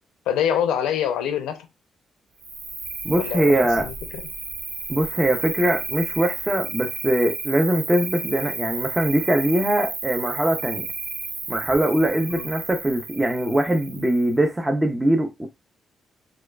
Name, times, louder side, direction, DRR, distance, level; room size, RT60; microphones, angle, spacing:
voice 1, 0.3-1.6 3.2-4.2 12.4-12.5, left 9 dB, 90° left, 0.5 m, -25 dB
Cricket, 2.4-14.4, right 4 dB, 70° right, 0.8 m, -33 dB
voice 2, 3.0-3.9 4.9-10.8 11.5-15.5, right 1 dB, 15° right, 0.5 m, -22 dB
4.3 x 2.3 x 2.3 m
supercardioid pair, 65°, 0 cm